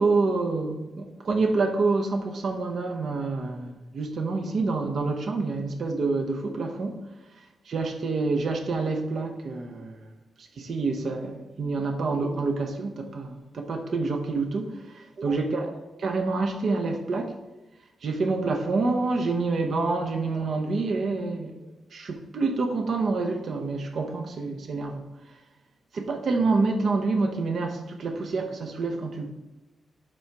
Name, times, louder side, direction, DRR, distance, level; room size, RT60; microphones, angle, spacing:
voice 1, 0.0-7.0 7.7-10.0 10.4-15.7 16.0-17.3 18.0-21.5 21.9-25.0 25.9-29.3, right 3 dB, 55° right, 0.9 m, -27 dB
7.6 x 4.0 x 4.7 m
wide cardioid pair, 150°, 0 cm